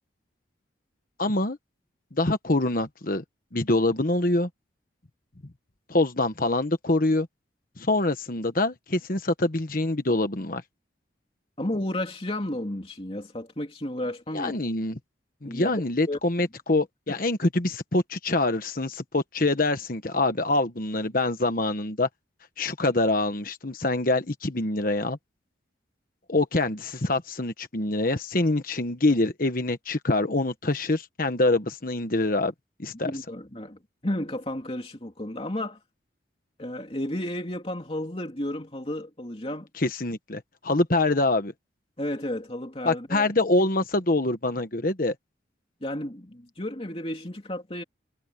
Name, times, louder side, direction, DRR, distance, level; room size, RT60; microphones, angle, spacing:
voice 1, 1.2-1.6 2.1-3.2 3.5-4.5 5.9-7.3 7.8-10.6 14.3-15.0 15.4-22.1 22.6-25.2 26.3-32.5 32.8-33.1 39.8-41.5 42.8-45.1, left 2 dB, 45° left, 1.3 m, -25 dB
voice 2, 11.6-14.5 15.4-16.2 17.1-17.2 33.0-35.8 36.6-39.7 42.0-43.3 45.8-47.8, left 1 dB, 30° left, 3.0 m, -32 dB
head